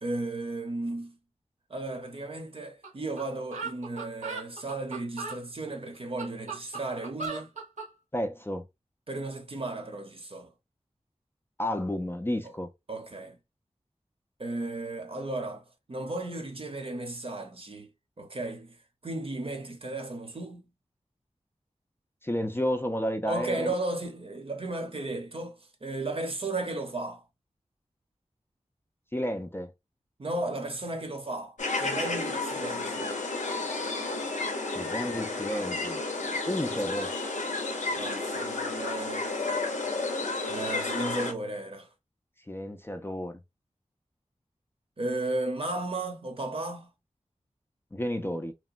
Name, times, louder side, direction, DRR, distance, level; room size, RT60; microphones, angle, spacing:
voice 1, 0.0-1.2 1.7-7.5 9.1-10.5 12.9-13.4 14.4-17.9 18.2-18.8 19.0-20.6 23.2-25.5 25.8-27.2 30.2-33.2 37.9-39.5 40.5-41.9 45.0-46.9, right 2 dB, 50° right, 0.7 m, -34 dB
sound 1, 2.8-2.9 3.2-3.3 3.5-5.4 5.9-7.9, right 4 dB, 90° right, 1.1 m, -37 dB
voice 2, 8.1-8.7 11.6-12.7 22.2-23.7 29.1-29.7 34.7-36.0 36.4-37.1 42.5-43.4 47.9-48.5, equal, 20° left, 0.4 m, -31 dB
sound 2, 31.6-41.3, left 3 dB, 85° left, 0.7 m, -32 dB
2.9 x 2.1 x 2.5 m
cardioid pair, 40°, 12 cm